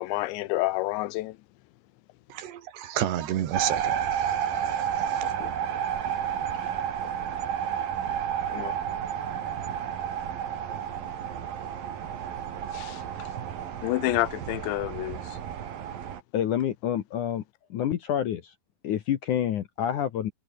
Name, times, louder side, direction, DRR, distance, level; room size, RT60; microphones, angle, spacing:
voice 1, 0.0-1.4 4.5-4.8 5.4-5.5 8.5-8.8 12.7-13.3 13.8-15.4, left 18 dB, 90° left, 3.2 m, -29 dB
voice 2, 2.3-5.3, right 11 dB, 75° right, 4.1 m, -32 dB
sound 1, 3.5-16.2, right 9 dB, 55° right, 3.8 m, -31 dB
voice 3, 16.3-17.4 17.7-18.5 18.8-20.3, left 10 dB, 65° left, 2.1 m, -28 dB
omnidirectional pair, 5.1 m